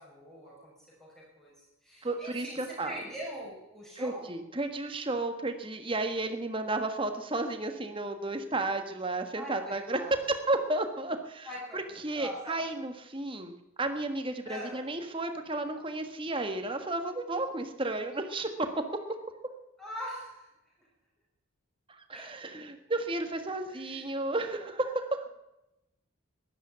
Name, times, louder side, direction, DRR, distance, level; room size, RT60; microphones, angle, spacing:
voice 1, 0.0-4.4 9.3-10.1 11.4-12.6 14.4-14.8 19.8-20.5 20.8-20.9 22.1-22.4 23.7-24.1, equal, ahead, -6 dB, 5.9 m, -43 dB
voice 2, 2.0-3.0 4.0-10.0 10.3-11.5 11.7-13.5 13.8-18.7 21.9-25.2, right 2 dB, 25° right, 6 dB, 1.5 m, -33 dB
12.5 x 11.5 x 9.6 m, 0.93 s
head